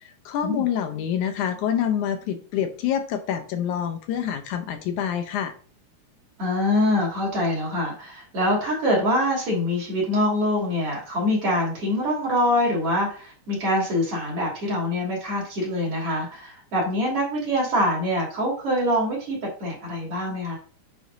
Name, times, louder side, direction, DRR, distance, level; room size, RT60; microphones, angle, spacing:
voice 1, 0.0-5.5, left 9 dB, 80° left, 7 dB, 2.1 m, -27 dB
voice 2, 6.4-20.6, left 1 dB, 45° right, -3 dB, 3.9 m, -24 dB
9.2 x 5.1 x 2.7 m, 0.40 s
omnidirectional pair, 3.6 m